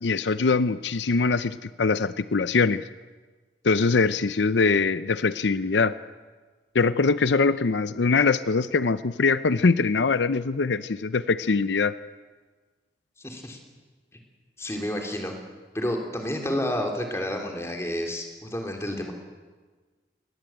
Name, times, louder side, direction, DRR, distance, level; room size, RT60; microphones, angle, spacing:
voice 1, 0.0-2.8 3.6-5.9 6.7-11.9, left 4 dB, 85° left, 14 dB, 0.6 m, -22 dB
voice 2, 13.2-13.6 14.6-15.3 15.7-19.1, left 1 dB, 15° left, 2 dB, 3.5 m, -30 dB
23.0 x 18.5 x 8.9 m, 1.4 s
head